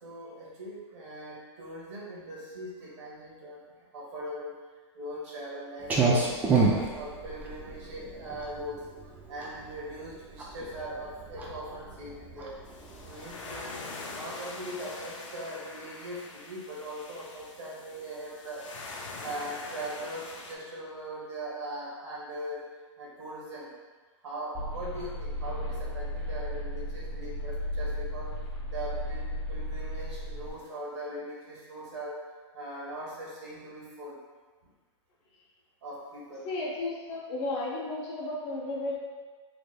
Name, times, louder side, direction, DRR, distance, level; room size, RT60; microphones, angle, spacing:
voice 1, 0.0-3.6 3.9-4.5 5.0-8.8 9.3-12.6 13.0-13.8 14.1-18.7 19.2-22.6 23.0-23.7 24.2-28.3 28.7-32.2 32.5-34.2 35.8-36.5, right 1 dB, 70° right, -6 dB, 1.3 m, -40 dB
Clock, 5.8-13.3, right 4 dB, 10° right, 0.3 m, -29 dB
sound 1, 12.6-20.6, left 3 dB, 85° left, 0.6 m, -43 dB
sound 2, 24.5-30.5, equal, 10° left, 1.0 m, -35 dB
voice 2, 36.5-39.0, left 2 dB, 40° left, -4 dB, 0.8 m, -33 dB
3.3 x 3.2 x 2.2 m, 1.4 s
hypercardioid pair, 130°, 16 cm